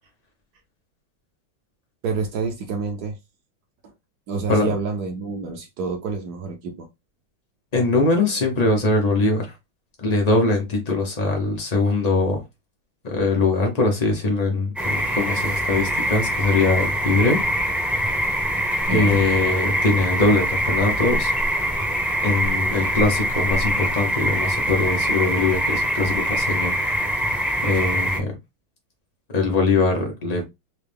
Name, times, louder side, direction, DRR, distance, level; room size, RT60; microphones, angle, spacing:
voice 1, 2.0-3.2 4.3-6.9 18.9-19.2, right 4 dB, 65° right, 1.0 m, -28 dB
voice 2, 7.7-9.5 10.0-12.4 13.0-17.4 18.9-21.3 22.2-26.8 27.6-28.3 29.3-30.4, left 3 dB, 80° left, 0.3 m, -21 dB
sound 1, 14.8-28.2, equal, ahead, 0.4 m, -23 dB
4.5 x 2.2 x 3.3 m
omnidirectional pair, 2.3 m